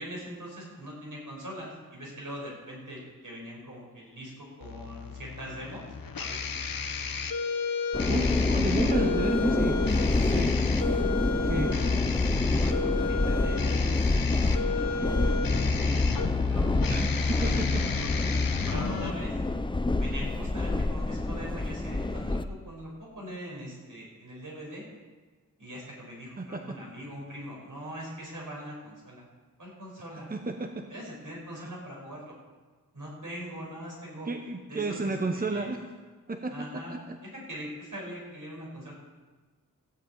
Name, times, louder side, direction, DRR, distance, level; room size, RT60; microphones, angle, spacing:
voice 1, 0.0-5.9 6.2-6.5 11.1-11.9 12.4-13.9 14.2-15.4 15.8-19.4 20.0-24.8 25.6-29.3 29.6-30.3 30.9-32.4 32.9-34.3 34.7-35.7 36.5-37.0 37.2-38.9, equal, 65° right, -3 dB, 5.9 m, -42 dB
sound 1, 4.6-19.1, left 4 dB, 90° left, 1.0 m, -30 dB
sound 2, 7.9-22.4, left 2 dB, 15° left, 0.5 m, -28 dB
voice 2, 8.1-9.8 10.2-10.6 11.4-11.8 16.9-17.9 26.4-26.8 30.3-30.9 31.6-31.7 34.2-35.9 36.3-37.2, right 3 dB, 25° right, 5 dB, 0.9 m, -32 dB
15.5 x 7.7 x 8.6 m, 1.4 s
wide cardioid pair, 90°, 34 cm